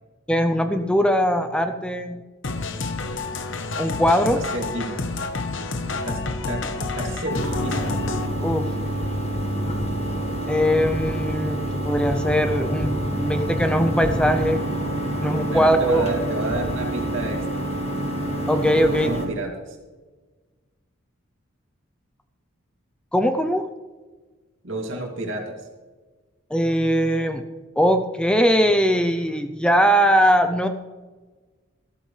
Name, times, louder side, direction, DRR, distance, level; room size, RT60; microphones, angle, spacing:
voice 1, 0.3-2.2 3.8-4.4 8.4-8.7 10.5-14.6 15.2-16.0 18.5-19.1 23.1-23.7 26.5-27.4 27.8-30.7, equal, 5° left, 7 dB, 0.5 m, -20 dB
sound 1, 2.4-8.3, left 3 dB, 65° left, 1.0 m, -29 dB
voice 2, 4.3-5.0 6.0-6.6 7.0-8.0 15.5-17.7 18.8-19.8 24.6-25.5, right 2 dB, 65° right, 1 dB, 2.6 m, -30 dB
sound 2, 7.3-19.3, right 1 dB, 30° left, 1.8 m, -27 dB
15.0 x 13.5 x 3.3 m, 1.3 s
head